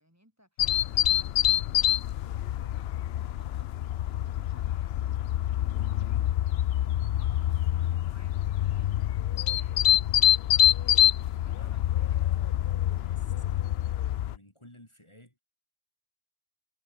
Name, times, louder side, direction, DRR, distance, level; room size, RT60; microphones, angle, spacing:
voice 1, 0.0-3.7 4.0-8.9 9.4-9.9 10.5-11.0 11.4-12.2 12.5-12.8, equal, 15° right, 6.3 m, -61 dB
sound 1, 0.6-14.4, left 12 dB, 75° left, 0.8 m, -26 dB
voice 2, 11.5-15.4, left 1 dB, 25° left, 5.1 m, -55 dB
omnidirectional pair, 1.1 m